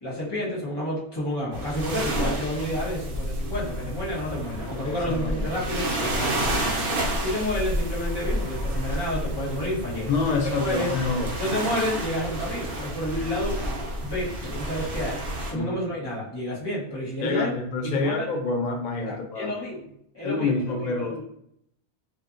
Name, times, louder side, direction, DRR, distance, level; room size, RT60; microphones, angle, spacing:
voice 1, 0.0-10.9 11.4-13.6 14.0-15.2 15.5-17.5 17.8-18.3 19.1-21.2, left 1 dB, 25° left, -7 dB, 0.9 m, -30 dB
sound 1, 1.5-15.5, right 1 dB, 55° right, 0.8 m, -30 dB
voice 2, 4.8-5.5 10.1-11.3 15.5-15.7 17.2-19.5 20.2-21.2, left 4 dB, 65° left, 2 dB, 0.4 m, -27 dB
2.6 x 2.5 x 2.4 m, 0.73 s
omnidirectional pair, 1.2 m